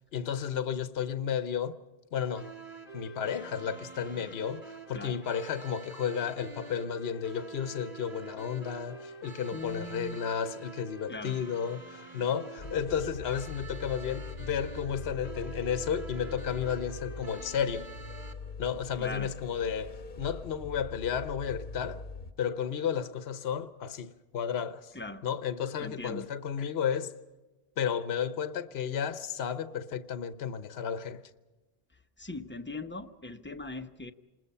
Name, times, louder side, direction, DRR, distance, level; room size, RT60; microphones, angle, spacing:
voice 1, 0.0-1.7 2.1-2.5 2.9-17.9 18.6-22.0 22.4-24.9 25.2-27.1 27.8-31.2, left 8 dB, 60° left, 1.1 m, -33 dB
sound 1, 2.3-18.3, right 4 dB, 15° right, 2.8 m, -47 dB
voice 2, 9.5-10.3 11.1-11.4 18.9-19.3 24.9-25.3 25.8-26.3 32.2-34.1, left 2 dB, 10° left, 0.8 m, -40 dB
sound 2, 12.6-22.3, left 3 dB, 45° left, 1.1 m, -43 dB
28.0 x 20.5 x 5.6 m
omnidirectional pair, 1.2 m